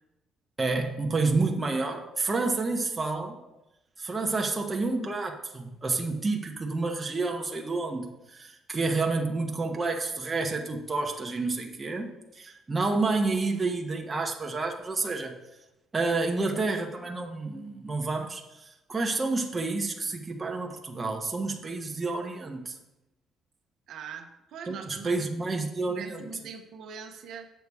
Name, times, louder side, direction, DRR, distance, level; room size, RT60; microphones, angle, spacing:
voice 1, 0.6-3.4 4.0-15.4 15.9-22.8 24.7-26.2, right 3 dB, 20° right, 2 dB, 1.0 m, -29 dB
voice 2, 23.9-25.2 25.9-27.5, right 6 dB, 60° right, 5 dB, 0.9 m, -42 dB
8.1 x 6.9 x 4.8 m, 0.94 s
cardioid pair, 140°, 0 cm